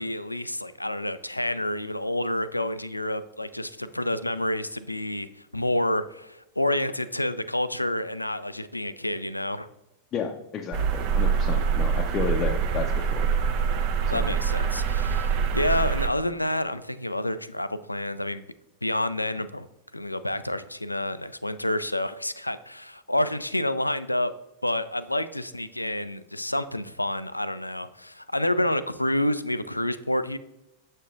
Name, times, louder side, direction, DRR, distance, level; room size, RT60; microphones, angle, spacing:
voice 1, 0.0-9.7 14.1-18.4 18.8-19.7 19.9-24.3 24.6-30.4, left 1 dB, 85° left, 14 dB, 0.3 m, -28 dB
voice 2, 10.1-13.3 14.1-14.3, left 6 dB, 30° left, 2 dB, 0.5 m, -32 dB
sound 1, 10.7-16.1, right 6 dB, 45° right, 0.5 m, -25 dB
7.3 x 6.5 x 2.4 m, 0.94 s
figure-of-eight pair, 90°, 0 cm